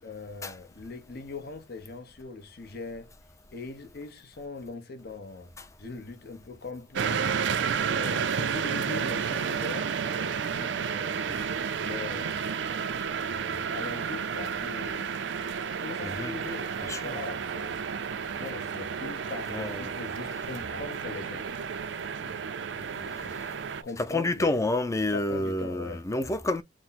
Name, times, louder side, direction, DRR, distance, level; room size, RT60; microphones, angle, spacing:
voice 1, 0.0-3.1 3.5-5.5 5.8-7.5 7.9-11.4 11.8-12.5 13.3-15.2 15.8-17.8 18.4-21.5 22.2-23.5 23.8-24.6 25.1-26.1, left 3 dB, 60° left, 0.9 m, -41 dB
sound 1, 7.0-23.8, right 6 dB, 75° right, 0.5 m, -31 dB
voice 2, 16.0-16.3 16.8-17.2 19.5-19.9 20.3-20.5 23.1-23.5 24.0-26.6, left 2 dB, 15° left, 0.5 m, -30 dB
6.1 x 2.1 x 4.1 m
head